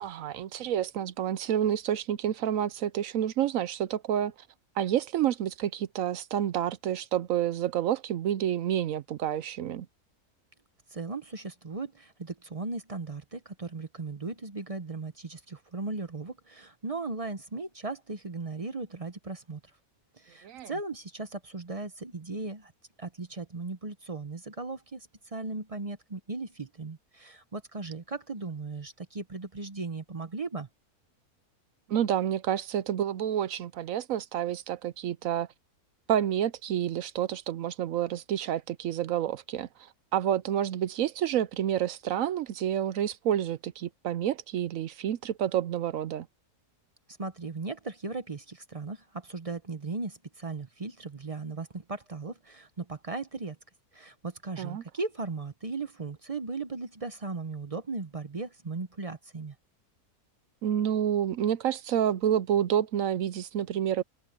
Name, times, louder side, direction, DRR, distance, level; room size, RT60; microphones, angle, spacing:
voice 1, 0.0-4.3 4.8-9.9 20.4-20.7 31.9-35.5 36.1-39.7 40.1-46.3 54.6-54.8 60.6-64.0, right 10 dB, 70° right, 1.0 m, -29 dB
voice 2, 10.9-19.6 20.2-22.7 23.0-30.7 47.2-53.6 53.9-59.5, right 3 dB, 30° right, 0.7 m, -37 dB
omnidirectional pair, 1.6 m